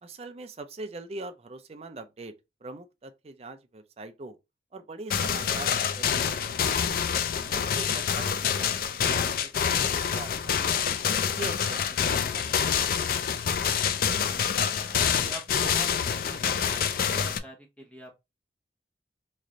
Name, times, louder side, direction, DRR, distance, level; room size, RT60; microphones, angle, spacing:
voice 1, 0.0-2.3 2.6-4.4 4.7-7.0 7.4-13.0, right 2 dB, 35° right, 0.4 m, -43 dB
sound 1, 5.1-17.4, left 7 dB, 50° left, 0.3 m, -27 dB
voice 2, 14.2-18.1, right 1 dB, 5° left, 1.0 m, -45 dB
3.1 x 2.5 x 3.8 m
head